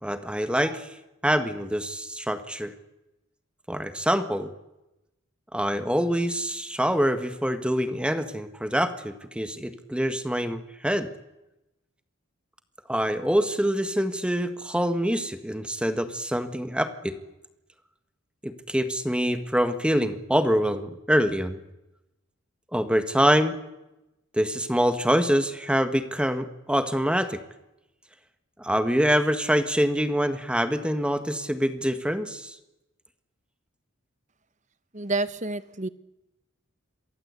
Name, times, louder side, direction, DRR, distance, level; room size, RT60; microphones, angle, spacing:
voice 1, 0.0-0.9 1.2-2.7 3.7-4.5 5.5-11.1 12.9-17.1 18.4-21.6 22.7-23.6 24.3-27.4 28.6-32.6, equal, 5° right, 9 dB, 1.5 m, -25 dB
voice 2, 34.9-35.9, right 2 dB, 35° right, 14 dB, 1.2 m, -29 dB
28.0 x 23.5 x 8.3 m, 0.96 s
head